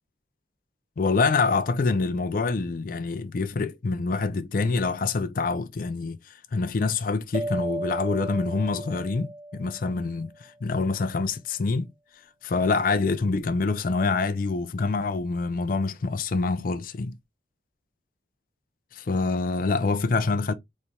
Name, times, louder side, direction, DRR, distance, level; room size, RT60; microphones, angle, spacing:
voice 1, 1.0-11.9 12.4-17.2 18.9-20.5, left 4 dB, 50° left, 0.4 m, -26 dB
sound 1, 7.3-10.3, right 1 dB, 35° right, 0.3 m, -34 dB
4.1 x 3.2 x 2.3 m
head